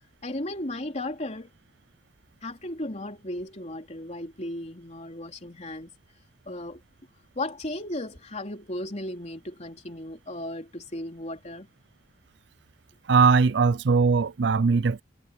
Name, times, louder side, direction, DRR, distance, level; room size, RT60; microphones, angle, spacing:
voice 1, 0.2-1.5 2.4-5.9 6.5-6.8 7.4-11.7, left 1 dB, 35° left, 3.6 m, -35 dB
voice 2, 13.1-15.0, right 4 dB, 65° right, 0.5 m, -20 dB
head